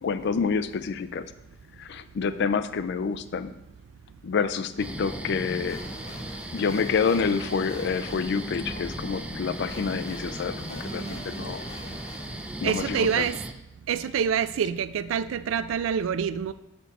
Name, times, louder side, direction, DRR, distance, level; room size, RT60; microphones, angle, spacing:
voice 1, 0.0-1.3 1.8-3.5 4.2-5.8 6.5-10.5 10.8-11.6 12.6-13.3, left 5 dB, 60° left, 13 dB, 0.4 m, -28 dB
sound 1, 4.8-12.8, left 1 dB, 35° left, 0.8 m, -42 dB
sound 2, 4.8-13.5, right 1 dB, 5° right, 0.4 m, -37 dB
voice 2, 12.6-13.3 13.9-16.5, right 7 dB, 80° right, 14 dB, 0.3 m, -26 dB
8.1 x 4.4 x 4.1 m, 0.89 s
head